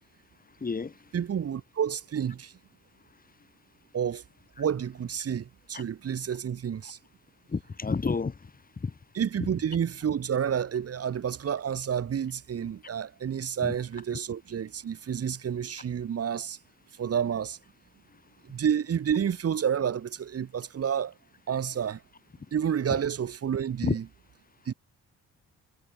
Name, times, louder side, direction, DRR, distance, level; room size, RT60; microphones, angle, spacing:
voice 1, 0.6-0.9 5.7-5.8 7.5-8.3 8.8-8.9 13.6-13.7 23.8-23.9, left 4 dB, 30° left, 2.8 m, -29 dB
voice 2, 1.1-2.5 3.9-4.2 4.6-7.0 9.1-16.6 17.0-17.6 18.4-21.1 21.5-22.0 22.5-24.0 24.7-24.8, right 8 dB, 50° right, 2.9 m, -29 dB
cardioid pair, 90°, 30 cm